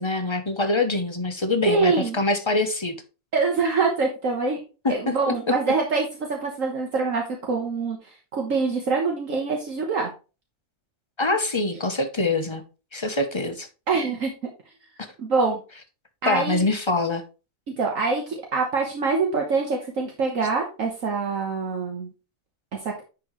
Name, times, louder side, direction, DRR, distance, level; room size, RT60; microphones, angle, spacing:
voice 1, 0.0-2.9 4.8-5.3 11.2-12.6 12.9-13.7 16.3-17.2, left 2 dB, 25° left, 0.8 m, -24 dB
voice 2, 1.7-2.2 3.3-4.6 4.9-10.1 13.9-14.3 15.2-15.6 16.2-16.6 17.8-22.1 22.7-23.1, right 4 dB, 60° right, 1.6 m, -25 dB
10.5 x 4.7 x 3.1 m
omnidirectional pair, 1.6 m